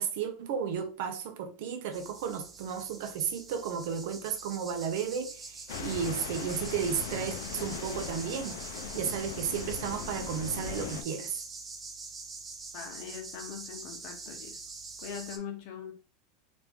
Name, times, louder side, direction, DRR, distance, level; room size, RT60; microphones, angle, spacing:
voice 1, 0.0-8.6 8.9-11.4, right 7 dB, 65° right, 0.6 m, -33 dB
sound 1, 1.9-15.4, right 4 dB, 15° right, 0.5 m, -44 dB
sound 2, 5.7-11.0, left 7 dB, 85° left, 0.4 m, -39 dB
voice 2, 12.7-14.6 15.0-15.9, left 7 dB, 50° left, 0.9 m, -41 dB
3.0 x 2.6 x 3.4 m
supercardioid pair, 160°, 0 cm